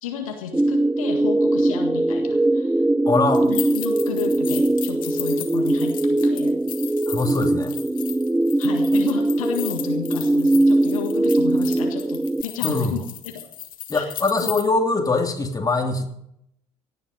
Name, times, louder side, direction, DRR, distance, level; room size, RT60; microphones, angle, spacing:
voice 1, 0.0-2.8 3.4-6.5 8.6-13.4 13.9-14.1 14.4-14.5, left 8 dB, 75° left, 4 dB, 1.7 m, -33 dB
sound 1, 0.5-12.4, right 2 dB, 5° right, 0.5 m, -21 dB
voice 2, 3.0-3.5 7.1-7.7 12.6-13.1 13.9-16.1, left 3 dB, 20° left, 3 dB, 2.9 m, -22 dB
sound 2, 3.3-14.6, left 11 dB, 50° left, 2.0 m, -35 dB
17.0 x 10.5 x 5.2 m, 0.76 s
figure-of-eight pair, 55°, 18 cm